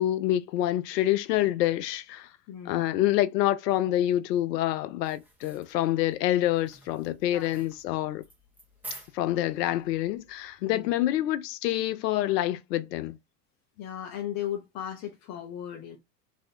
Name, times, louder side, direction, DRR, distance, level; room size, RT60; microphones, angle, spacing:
voice 1, 0.0-2.3 2.7-8.2 9.1-13.2, left 14 dB, 75° left, 0.6 m, -27 dB
voice 2, 2.5-2.9 7.3-7.5 10.6-10.9 13.8-16.0, left 10 dB, 35° left, 0.6 m, -36 dB
sound 1, 5.0-10.6, right 2 dB, 5° right, 1.0 m, -50 dB
3.1 x 2.7 x 2.6 m
hypercardioid pair, 95°, 50 cm